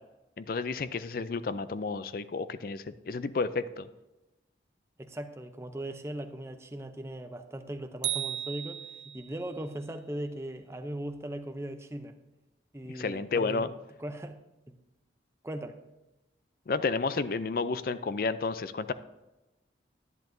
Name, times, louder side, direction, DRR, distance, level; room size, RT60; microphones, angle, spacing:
voice 1, 0.4-3.9 12.9-13.7 16.7-18.9, left 4 dB, 55° left, 14 dB, 0.4 m, -31 dB
voice 2, 5.0-12.2 12.7-13.7 14.0-14.4 14.7-14.8 15.4-15.8, right 1 dB, 15° right, 6 dB, 0.6 m, -39 dB
sound 1, 8.0-9.4, right 12 dB, 75° right, 0.5 m, -35 dB
11.0 x 10.5 x 2.7 m, 1.0 s
head